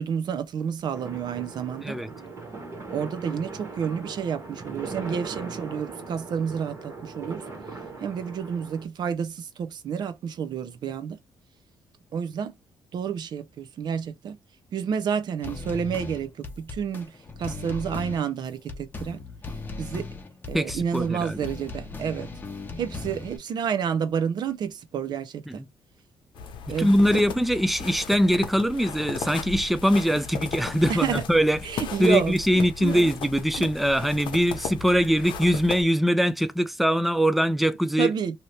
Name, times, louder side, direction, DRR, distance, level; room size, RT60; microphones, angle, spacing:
voice 1, 0.0-2.0 2.9-7.4 8.0-11.2 12.1-12.5 12.9-14.4 14.7-17.1 17.4-19.2 19.8-20.1 20.5-22.3 22.8-25.6 26.7-26.9 30.9-31.2 31.6-32.4 32.8-33.1 33.6-33.7 38.0-38.4, right 7 dB, 60° right, 0.6 m, -29 dB
sound 1, 0.9-8.9, right 3 dB, 35° right, 1.4 m, -39 dB
sound 2, 15.4-23.4, left 3 dB, 25° left, 0.7 m, -37 dB
voice 2, 20.5-21.4 25.5-25.7 26.8-31.6 32.0-38.1, equal, ahead, 0.4 m, -22 dB
sound 3, 26.3-35.8, left 6 dB, 70° left, 0.8 m, -36 dB
2.8 x 2.6 x 3.2 m
cardioid pair, 130°, 8 cm